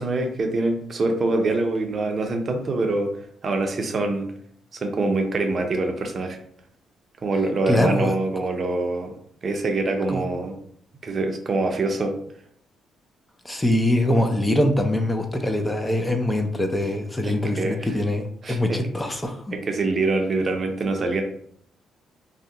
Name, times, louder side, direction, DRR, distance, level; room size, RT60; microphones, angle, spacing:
voice 1, 0.0-3.1 3.4-4.3 4.7-6.4 7.2-9.1 9.4-10.6 11.0-12.2 13.5-13.6 17.2-17.9 18.4-18.8 19.5-21.2, right 2 dB, 45° right, 4 dB, 0.5 m, -25 dB
voice 2, 7.7-8.2 10.1-10.2 13.4-19.5, left 1 dB, 15° left, 5 dB, 0.4 m, -23 dB
2.7 x 2.1 x 3.7 m, 0.65 s
cardioid pair, 90°, 0 cm